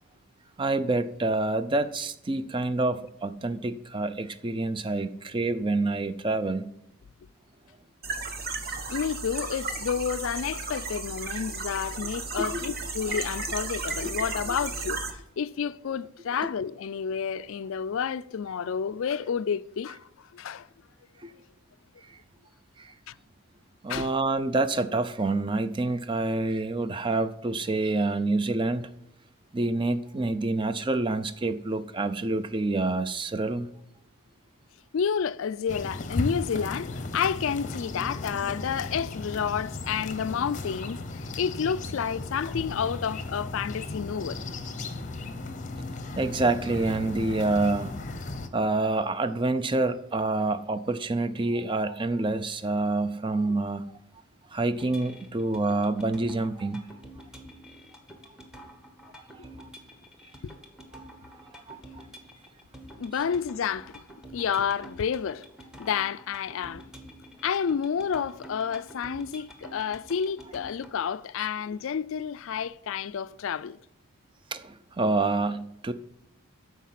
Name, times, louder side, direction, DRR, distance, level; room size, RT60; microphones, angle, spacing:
voice 1, 0.6-6.7 12.4-12.7 13.1-13.2 14.2-14.3 21.2-21.3 22.0-22.2 22.8-22.9 23.8-28.9 29.5-33.7 46.2-48.0 48.5-53.9 54.5-56.9 59.3-59.7 60.9-61.1 61.7-61.8 74.5-75.9, right 2 dB, 20° right, 0.5 m, -27 dB
sound 1, 8.0-15.1, right 4 dB, 45° right, 1.0 m, -34 dB
voice 2, 8.9-20.7 23.1-23.2 23.9-24.1 34.9-44.4 60.4-60.5 63.0-64.0 64.3-65.5 65.8-66.8 67.4-73.8, left 7 dB, 60° left, 0.4 m, -30 dB
sound 2, 35.7-48.5, left 2 dB, 35° left, 0.7 m, -36 dB
sound 3, 54.8-71.0, equal, 5° right, 1.1 m, -48 dB
13.0 x 4.6 x 5.9 m
head